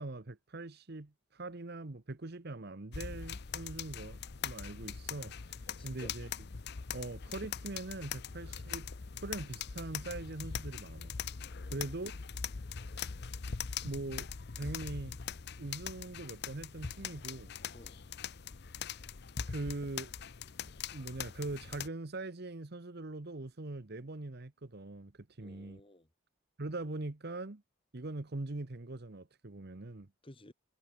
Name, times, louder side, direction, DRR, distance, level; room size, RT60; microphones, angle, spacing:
voice 1, 0.0-5.6 5.8-6.3 6.9-8.9 9.2-11.1 11.7-12.1 13.8-14.3 14.5-15.2 15.6-17.5 19.5-20.1 20.6-25.8 26.6-27.6 27.9-30.1, right 2 dB, 50° right, 1.1 m, -42 dB
sound 1, 2.9-21.9, left 7 dB, 55° left, 0.7 m, -42 dB
voice 2, 5.7-6.2 11.4-11.9 17.7-18.0 25.4-26.1 30.2-30.5, left 1 dB, 25° left, 2.0 m, -54 dB
head